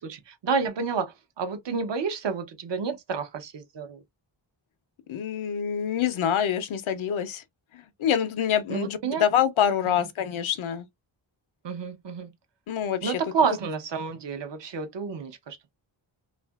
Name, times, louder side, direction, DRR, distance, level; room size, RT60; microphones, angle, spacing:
voice 1, 0.0-4.0 8.7-9.2 9.8-10.0 11.6-12.3 13.0-15.7, right 5 dB, 60° right, 0.8 m, -30 dB
voice 2, 5.1-7.4 7.7-10.9 12.7-13.2, left 9 dB, 75° left, 0.6 m, -26 dB
2.7 x 2.5 x 2.2 m
wide cardioid pair, 90°, 49 cm